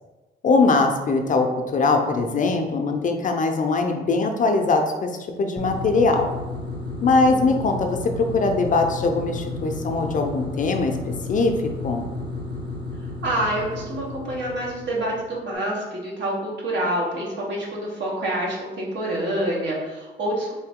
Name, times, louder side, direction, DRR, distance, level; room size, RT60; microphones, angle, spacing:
voice 1, 0.4-5.1 5.4-6.3 7.0-11.0 11.3-11.5 11.8-12.1, left 3 dB, 40° left, 4 dB, 0.5 m, -21 dB
sound 1, 5.6-15.4, left 2 dB, 20° right, 0.8 m, -33 dB
voice 2, 13.2-20.5, right 1 dB, 60° right, -3 dB, 1.2 m, -27 dB
3.7 x 2.7 x 3.6 m, 1.2 s
cardioid pair, 90°, 20 cm